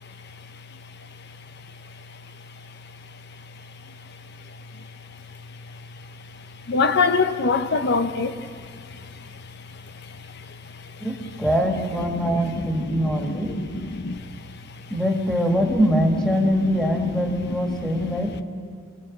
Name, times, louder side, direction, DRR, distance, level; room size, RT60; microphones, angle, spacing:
voice 1, 6.7-8.5 12.5-12.6 12.9-14.2 17.5-17.6, left 4 dB, 60° left, 0.8 m, -23 dB
voice 2, 11.0-13.7 14.9-18.4, equal, 5° left, 2.3 m, -23 dB
24.5 x 17.5 x 7.6 m
head